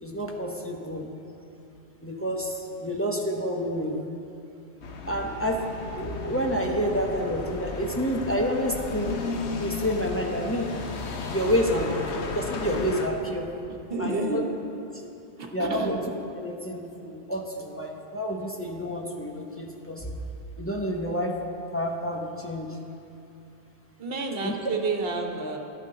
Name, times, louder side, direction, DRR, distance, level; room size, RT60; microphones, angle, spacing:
voice 1, 0.0-1.1 2.0-4.0 5.1-10.8 11.3-13.5 14.0-14.4 15.5-16.0 16.3-20.1 20.6-21.4 21.7-22.8 24.4-24.5, equal, 15° left, 0 dB, 0.8 m, -29 dB
sound 1, 4.8-13.1, left 4 dB, 85° left, 1.2 m, -34 dB
voice 2, 13.9-14.4 15.4-15.9 24.0-25.6, right 3 dB, 60° right, 3 dB, 1.3 m, -30 dB
12.0 x 11.5 x 3.9 m, 2.7 s
omnidirectional pair, 1.1 m